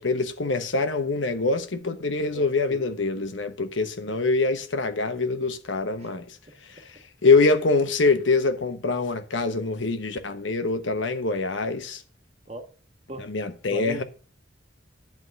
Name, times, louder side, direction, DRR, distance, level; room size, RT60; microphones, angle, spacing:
voice 1, 0.0-6.2 7.2-12.0 13.2-14.0, left 3 dB, 85° left, 1.1 m, -24 dB
voice 2, 2.3-2.8 6.0-6.1 12.5-12.6 13.1-13.3 13.7-14.0, right 1 dB, 35° right, 1.4 m, -37 dB
10.5 x 3.6 x 6.1 m
head